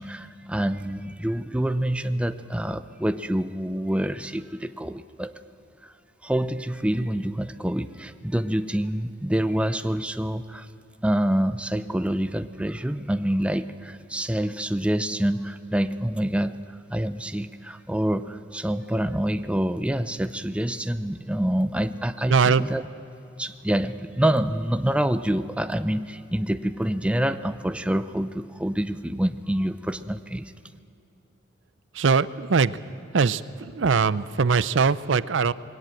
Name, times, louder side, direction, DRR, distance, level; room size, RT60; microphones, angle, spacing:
voice 1, 0.0-5.3 5.8-5.9 6.2-10.7 11.0-22.8 23.4-30.5, right 1 dB, 5° right, 11 dB, 0.5 m, -26 dB
voice 2, 22.3-22.6 31.9-32.8 33.1-35.5, right 5 dB, 80° right, 17 dB, 0.6 m, -21 dB
21.5 x 17.5 x 9.0 m, 2.9 s
head